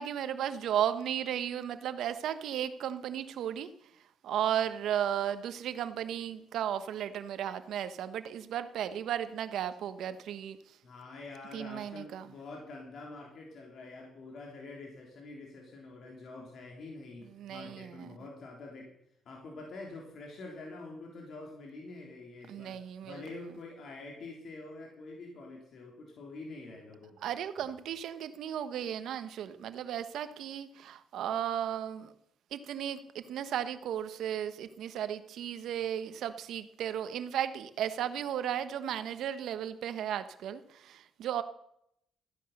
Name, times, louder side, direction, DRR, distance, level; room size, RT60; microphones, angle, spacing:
voice 1, 0.0-3.7 4.2-10.6 11.5-12.3 17.3-18.2 22.5-23.4 27.2-32.1 32.5-41.4, right 10 dB, 75° right, 11 dB, 1.1 m, -35 dB
voice 2, 10.8-18.9 19.3-27.3, left 3 dB, 60° left, -1 dB, 3.5 m, -46 dB
14.5 x 10.0 x 6.7 m, 0.76 s
cardioid pair, 90°, 0 cm